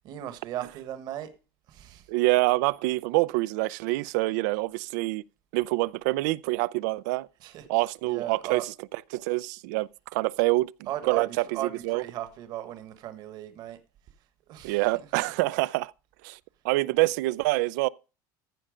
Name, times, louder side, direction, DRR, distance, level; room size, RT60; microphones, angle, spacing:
voice 1, 0.0-1.3 1.7-2.1 7.4-8.7 9.3-9.4 10.8-13.8 14.5-15.3, right 12 dB, 45° right, 1.2 m, -37 dB
voice 2, 2.1-5.2 5.5-7.3 7.7-8.7 9.1-12.0 14.6-15.9 16.2-16.4 16.6-17.9, right 21 dB, 85° right, 0.4 m, -26 dB
14.5 x 5.6 x 5.0 m
cardioid pair, 160°, 9 cm